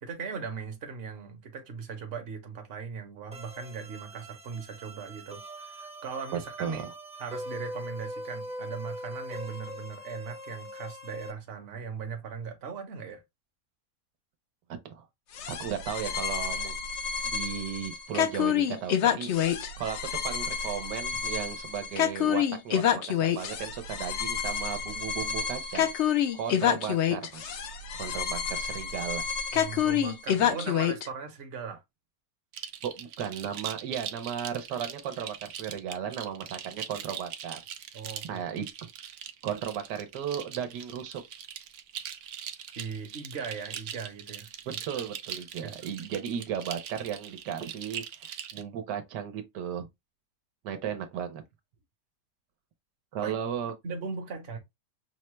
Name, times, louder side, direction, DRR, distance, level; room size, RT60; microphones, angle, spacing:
voice 1, 0.0-6.8 7.2-13.2 29.5-31.8 37.9-38.5 42.8-45.0 45.6-45.7 53.2-53.4 53.8-54.6, right 5 dB, 45° right, 1.0 m, -39 dB
sound 1, 3.3-11.3, equal, 5° right, 0.6 m, -42 dB
voice 2, 6.3-6.9 14.7-15.1 15.5-16.7 17.2-19.3 19.8-20.0 20.2-25.9 26.3-27.6 28.0-29.2 30.4-30.5 32.8-37.6 38.2-38.6 39.4-41.2 44.9-49.9 50.6-51.4 53.1-53.7, right 8 dB, 90° right, 1.4 m, -35 dB
sound 2, 15.3-31.1, left 8 dB, 65° left, 0.7 m, -28 dB
sound 3, 32.5-48.6, right 9 dB, 70° right, 0.7 m, -41 dB
5.4 x 2.2 x 3.0 m
omnidirectional pair, 1.8 m